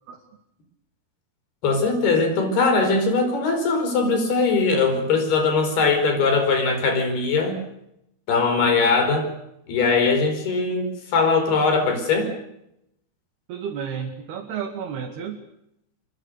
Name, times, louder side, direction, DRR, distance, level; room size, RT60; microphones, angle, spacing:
voice 1, 1.6-7.6 8.3-9.3 9.7-12.3, left 4 dB, 75° left, 6 dB, 7.0 m, -21 dB
voice 2, 13.5-15.4, right 7 dB, 80° right, 2 dB, 4.3 m, -31 dB
26.5 x 24.5 x 6.6 m, 0.80 s
omnidirectional pair, 4.5 m